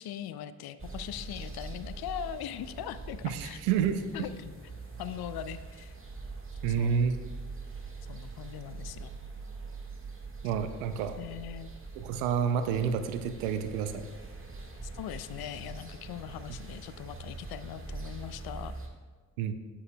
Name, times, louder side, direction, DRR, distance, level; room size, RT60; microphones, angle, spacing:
voice 1, 0.0-3.6 4.1-4.5 5.0-5.9 6.7-7.0 8.1-9.1 11.2-11.7 14.9-18.8, left 10 dB, 60° left, 13 dB, 0.5 m, -40 dB
sound 1, 0.8-18.9, right 3 dB, 30° right, 1.6 m, -43 dB
voice 2, 3.2-4.0 6.6-7.2 10.4-11.2 12.0-14.1 19.4-19.5, right 7 dB, 85° right, 10 dB, 0.6 m, -29 dB
9.7 x 8.2 x 2.3 m, 1.5 s
hypercardioid pair, 40°, 43 cm